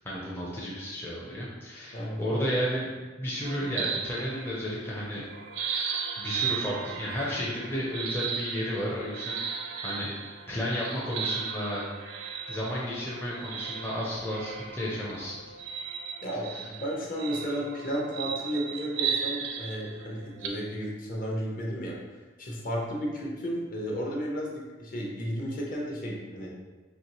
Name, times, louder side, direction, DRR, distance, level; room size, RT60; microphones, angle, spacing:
voice 1, 0.0-5.3 6.2-11.8 12.5-15.4 16.5-16.7, equal, 10° left, -6 dB, 0.5 m, -33 dB
voice 2, 1.9-2.4 16.2-22.0 22.4-26.6, equal, 45° left, -3 dB, 0.8 m, -33 dB
sound 1, 3.4-4.9 5.3-20.5, right 7 dB, 75° right, 0.5 m, -36 dB
4.3 x 2.9 x 2.9 m, 1.3 s
head